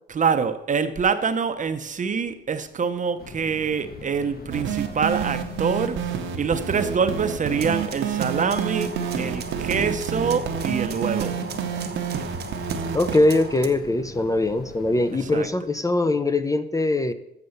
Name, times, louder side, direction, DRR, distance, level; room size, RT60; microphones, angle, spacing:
voice 1, 0.1-6.1 6.4-11.4 15.2-15.5, right 6 dB, 40° right, 0.7 m, -25 dB
sound 1, 3.2-15.5, left 4 dB, 50° left, 1.0 m, -42 dB
sound 2, 4.5-13.2, right 7 dB, 80° right, 1.0 m, -29 dB
sound 3, 7.6-13.7, right 5 dB, 55° right, 1.1 m, -37 dB
voice 2, 12.9-17.1, left 2 dB, 15° left, 0.5 m, -22 dB
7.2 x 6.7 x 6.5 m
cardioid pair, 90°, 20 cm